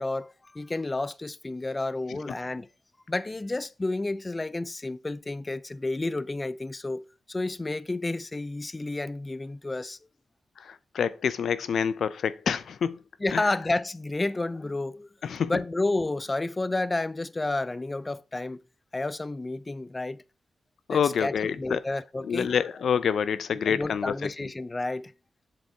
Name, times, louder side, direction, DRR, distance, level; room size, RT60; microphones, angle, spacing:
voice 1, 0.0-2.7 3.1-10.0 13.2-15.1 15.5-18.6 18.9-20.2 20.9-22.7 23.7-25.1, left 2 dB, 25° left, 0.4 m, -31 dB
voice 2, 10.6-13.0 13.3-13.6 15.2-15.7 20.9-21.8 22.2-24.5, left 7 dB, 80° left, 0.6 m, -28 dB
7.7 x 6.9 x 4.6 m
wide cardioid pair, 105°, 0 cm